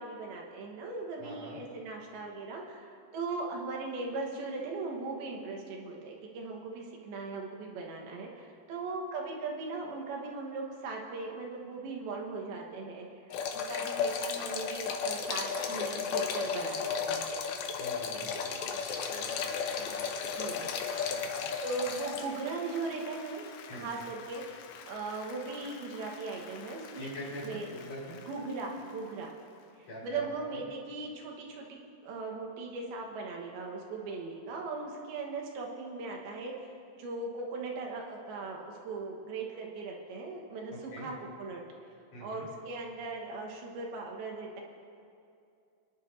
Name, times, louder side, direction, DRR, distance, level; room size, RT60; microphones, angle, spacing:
voice 1, 0.0-17.2 20.4-20.6 21.6-27.1 27.4-27.7 28.3-29.3 29.8-36.7 37.0-41.6 42.2-44.6, right 3 dB, 80° right, 0 dB, 3.3 m, -39 dB
voice 2, 1.2-1.6 17.8-18.7 19.1-20.7 21.0-21.5 23.7-23.9 27.0-28.2 29.8-30.6 40.7-41.1 42.1-42.5, equal, 45° left, -6 dB, 4.9 m, -45 dB
sound 1, 13.3-22.3, left 6 dB, 75° left, 1.7 m, -34 dB
Applause, 18.6-30.0, left 7 dB, 90° left, 2.7 m, -50 dB
26.0 x 10.5 x 2.7 m, 2.5 s
omnidirectional pair, 4.3 m